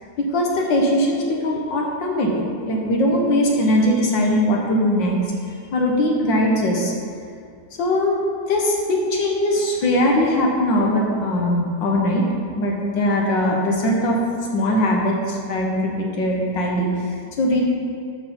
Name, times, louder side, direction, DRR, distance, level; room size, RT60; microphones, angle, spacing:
voice 1, 0.2-5.2 5.7-6.9 7.8-8.2 8.5-12.2 12.6-14.2 14.5-17.6, left 1 dB, 60° left, -1 dB, 1.6 m, -20 dB
12.5 x 4.8 x 4.4 m, 2.3 s
omnidirectional pair, 2.3 m